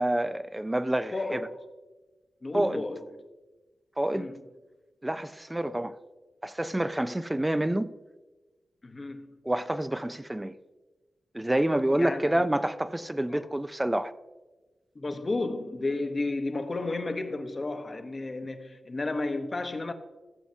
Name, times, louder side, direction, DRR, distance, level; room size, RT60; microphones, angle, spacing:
voice 1, 0.0-1.4 2.5-2.8 4.0-4.3 5.0-5.9 6.4-7.9 9.4-10.5 11.3-14.1, right 1 dB, 10° right, 0.3 m, -28 dB
voice 2, 1.1-1.6 2.4-3.1 4.1-4.4 8.8-9.4 11.9-12.4 13.3-13.5 14.9-19.9, left 2 dB, 25° left, 0.7 m, -33 dB
15.5 x 7.8 x 2.6 m
wide cardioid pair, 160°, 0 cm